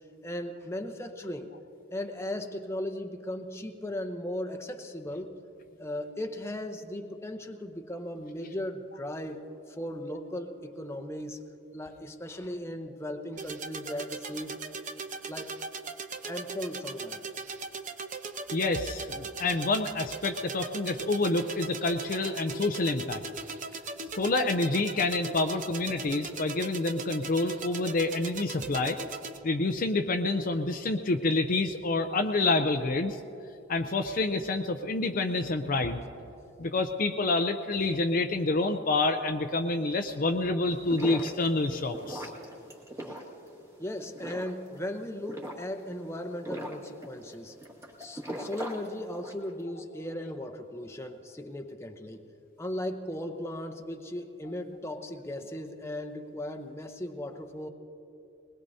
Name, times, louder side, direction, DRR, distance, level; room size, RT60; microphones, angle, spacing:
voice 1, 0.2-1.5 1.9-5.3 5.8-11.4 11.7-14.6 15.3-15.6 16.3-17.2 43.1-43.2 43.8-47.6 48.0-52.2 52.6-57.7, left 1 dB, 15° left, 5 dB, 0.7 m, -37 dB
sound 1, 13.4-29.4, right 4 dB, 40° right, 0.8 m, -39 dB
voice 2, 18.5-23.2 24.2-29.0 29.4-33.2 33.7-36.0 36.6-42.3, left 2 dB, 40° left, 6 dB, 0.5 m, -28 dB
sound 2, 40.7-49.5, equal, 15° right, 1.8 m, -41 dB
21.0 x 20.5 x 2.7 m, 2.8 s
head